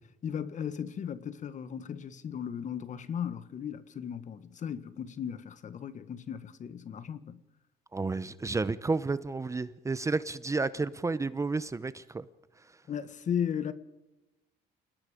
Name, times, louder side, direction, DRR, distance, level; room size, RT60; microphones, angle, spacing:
voice 1, 0.2-7.4 12.9-13.7, left 8 dB, 45° left, 1.7 m, -36 dB
voice 2, 7.9-12.2, right 3 dB, 20° right, 0.8 m, -31 dB
29.0 x 18.5 x 5.1 m
cardioid pair, 110°, 17 cm